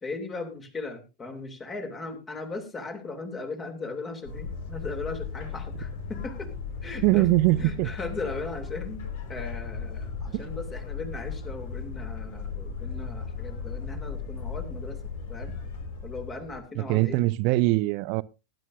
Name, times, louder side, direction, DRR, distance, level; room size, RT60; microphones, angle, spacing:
voice 1, 0.0-6.5 6.8-7.3 7.6-9.0 9.3-15.0 15.3-15.6 16.0-17.2, left 3 dB, 20° left, 2.8 m, -37 dB
sound 1, 4.2-16.6, left 5 dB, 55° left, 3.3 m, -36 dB
voice 2, 7.0-7.9 10.3-10.4 16.8-18.2, right 19 dB, 45° right, 0.6 m, -22 dB
19.5 x 10.5 x 2.6 m
figure-of-eight pair, 90°, 0 cm